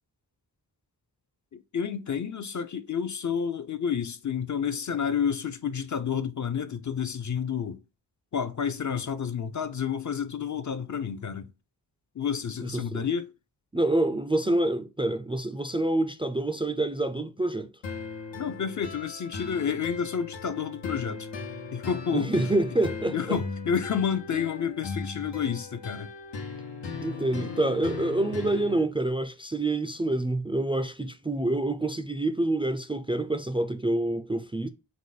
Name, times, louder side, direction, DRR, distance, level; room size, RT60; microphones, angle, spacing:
voice 1, 1.5-7.8 8.3-11.5 12.2-13.3 18.4-21.3 21.7-22.3 23.1-26.1, left 7 dB, 45° left, 0.5 m, -30 dB
voice 2, 12.6-13.0 13.7-17.7 22.1-23.4 27.0-34.7, right 2 dB, 15° right, 0.4 m, -27 dB
sound 1, 17.8-28.8, left 4 dB, 90° left, 1.0 m, -38 dB
4.8 x 2.1 x 3.9 m
wide cardioid pair, 80°, 42 cm